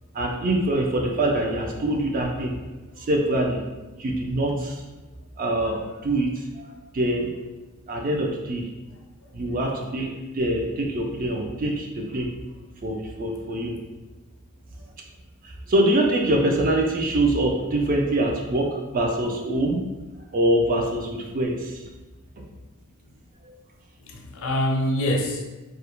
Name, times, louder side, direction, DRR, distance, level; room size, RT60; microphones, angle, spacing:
voice 1, 0.1-2.5 2.9-3.7 4.0-4.8 5.4-6.7 6.9-7.4 7.9-8.7 9.3-12.3 12.8-13.8 15.4-19.8 20.3-21.8 22.4-22.5 23.4-23.6, right 1 dB, 40° right, 1 dB, 0.3 m, -24 dB
voice 2, 9.2-9.6 14.8-14.9 23.0-23.1 24.0-25.5, left 1 dB, 60° left, 0 dB, 0.5 m, -27 dB
2.3 x 2.0 x 2.9 m, 1.1 s
head